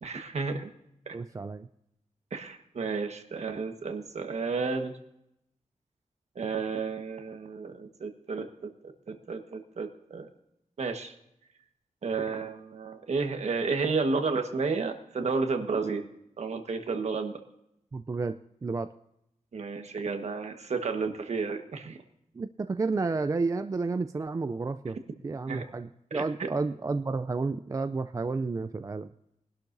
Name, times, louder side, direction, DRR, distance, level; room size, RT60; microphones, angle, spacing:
voice 1, 0.0-0.7 1.1-1.2 2.3-4.9 6.3-8.7 9.1-10.3 10.8-11.1 12.0-16.0 16.4-17.4 19.5-22.0 25.5-25.6 26.1-26.2, right 4 dB, 60° right, 6 dB, 1.4 m, -32 dB
voice 2, 1.1-1.7 17.9-18.9 22.3-25.0 25.2-29.1, right 3 dB, 25° right, 10 dB, 0.3 m, -31 dB
22.5 x 12.0 x 2.6 m, 0.80 s
wide cardioid pair, 170°, 13 cm